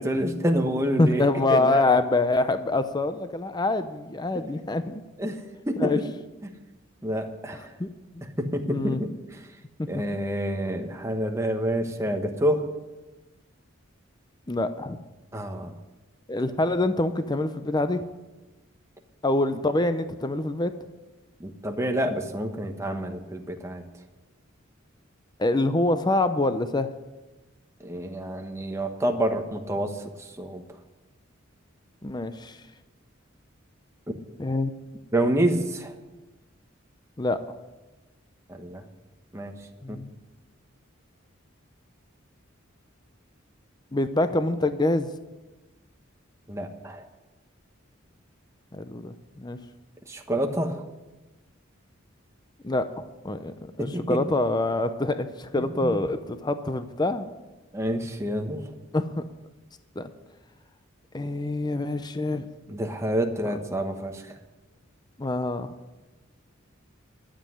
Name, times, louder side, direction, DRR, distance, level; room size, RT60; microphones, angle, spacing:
voice 1, 0.0-1.2 1.5-1.8 4.3-4.5 5.2-5.4 5.7-6.0 6.4-6.5 7.0-7.7 8.2-9.1 9.9-12.6 15.3-15.7 21.4-23.8 27.8-30.6 35.1-35.9 38.5-38.8 39.3-39.5 39.9-40.0 46.5-47.0 50.1-50.8 53.8-54.2 55.6-56.0 57.7-58.6 62.7-64.3, right 1 dB, 15° right, 4 dB, 1.2 m, -28 dB
voice 2, 1.0-5.0 5.8-6.0 7.8-7.9 8.1-8.2 8.7-9.0 14.5-15.0 16.3-18.0 19.2-20.7 25.4-26.9 32.0-32.6 34.4-34.7 37.2-37.4 39.8-40.1 43.9-45.1 48.7-49.6 52.6-52.8 53.2-57.3 58.9-59.2 60.0-60.1 61.1-62.5 65.2-65.7, left 2 dB, 20° left, 10 dB, 0.6 m, -25 dB
12.0 x 7.6 x 9.8 m, 1.1 s
head